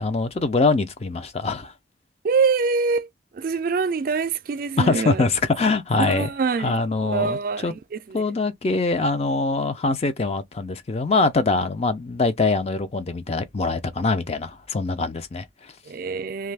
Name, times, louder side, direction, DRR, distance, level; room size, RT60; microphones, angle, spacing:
voice 1, 0.0-1.7 4.8-6.3 6.6-7.7 8.1-15.7, left 3 dB, 30° left, 0.4 m, -23 dB
voice 2, 2.2-3.1 3.3-5.2 6.0-6.7 7.0-8.2 15.9-16.5, right 4 dB, 45° right, 0.3 m, -24 dB
2.6 x 2.3 x 3.3 m
head